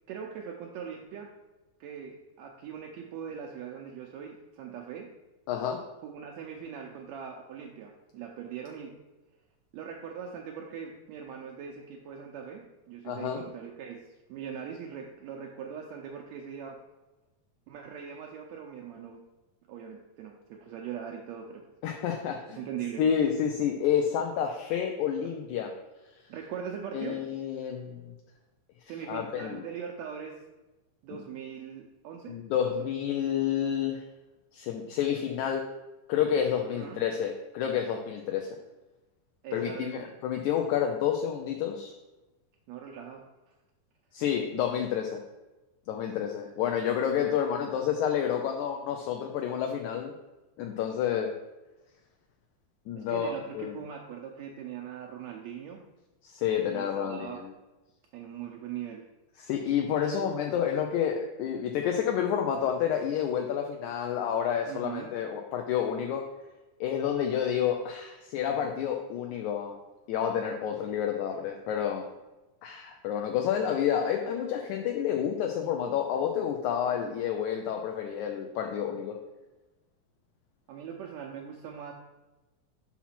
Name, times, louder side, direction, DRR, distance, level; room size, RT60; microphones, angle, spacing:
voice 1, 0.1-1.3 1.8-5.1 6.0-8.9 9.7-16.8 17.7-19.2 19.7-21.7 22.5-23.0 26.3-27.2 28.9-30.4 31.0-32.7 36.6-37.0 39.4-40.1 42.7-43.2 52.9-55.8 56.7-57.4 58.1-59.0 60.1-60.3 64.7-65.1 80.7-81.9, right 8 dB, 85° right, 1 dB, 1.6 m, -41 dB
voice 2, 5.5-5.8 13.1-13.5 21.8-22.6 23.0-25.7 26.9-28.1 29.1-29.6 32.3-34.0 34.5-35.6 36.1-38.5 39.5-41.9 44.1-45.2 45.9-50.1 50.6-51.3 52.9-53.8 56.2-57.5 59.4-66.2 66.8-69.8 70.1-72.1 72.6-79.2, left 8 dB, 80° left, 3 dB, 1.9 m, -29 dB
5.8 x 5.7 x 4.2 m, 1.1 s
omnidirectional pair, 3.7 m